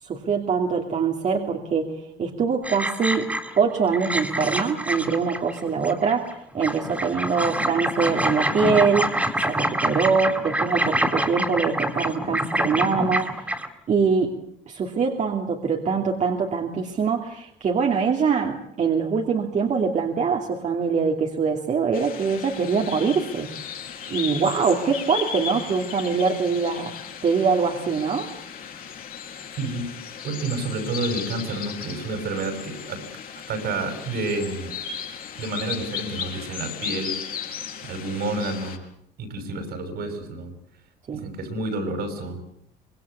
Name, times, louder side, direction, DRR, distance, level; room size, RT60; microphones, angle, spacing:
voice 1, 0.0-3.3 3.6-13.5 13.9-14.3 14.7-23.5 24.1-26.9 27.2-28.3 41.1-41.3, right 5 dB, 45° right, 1 dB, 2.8 m, -23 dB
sound 1, 2.6-3.6 3.9-6.3 6.6-13.7, right 1 dB, 10° right, 3.4 m, -26 dB
sound 2, 21.9-38.8, left 8 dB, 60° left, 5.4 m, -36 dB
voice 2, 29.6-29.9 30.2-33.0 33.5-34.7 35.4-37.1 37.8-38.8 39.2-40.5 41.1-42.4, right 2 dB, 70° right, 7 dB, 6.7 m, -29 dB
25.5 x 21.0 x 8.3 m, 0.74 s
cardioid pair, 110°, 17 cm